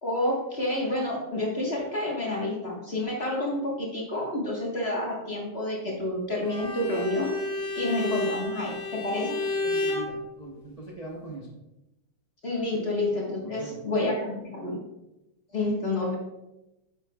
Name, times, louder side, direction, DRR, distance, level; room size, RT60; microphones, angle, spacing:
voice 1, 0.0-7.3 7.7-9.4 12.4-14.8 15.5-16.2, left 1 dB, 30° left, -3 dB, 1.5 m, -29 dB
Bowed string instrument, 6.4-10.1, left 3 dB, 50° left, 2.2 m, -31 dB
voice 2, 9.6-11.5 12.7-12.8 13.4-13.8 15.5-15.7, right 2 dB, 30° right, -3 dB, 0.6 m, -41 dB
9.3 x 7.3 x 2.4 m, 0.94 s
omnidirectional pair, 2.4 m